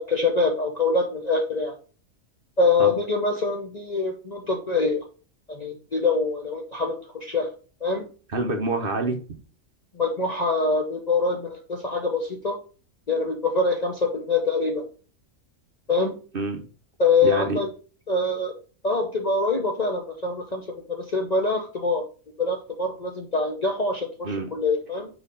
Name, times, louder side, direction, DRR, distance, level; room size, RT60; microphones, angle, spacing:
voice 1, 0.0-1.7 2.6-5.0 5.5-7.5 7.8-8.0 9.9-12.6 13.1-14.9 15.9-16.1 17.0-17.7 18.1-18.6 18.8-22.0 22.4-25.1, left 3 dB, 40° left, 2 dB, 0.7 m, -24 dB
voice 2, 8.3-9.2 16.3-16.7 17.2-17.6 24.2-24.5, right 2 dB, 45° right, 4 dB, 0.9 m, -26 dB
4.6 x 4.3 x 5.1 m, 0.38 s
omnidirectional pair, 1.4 m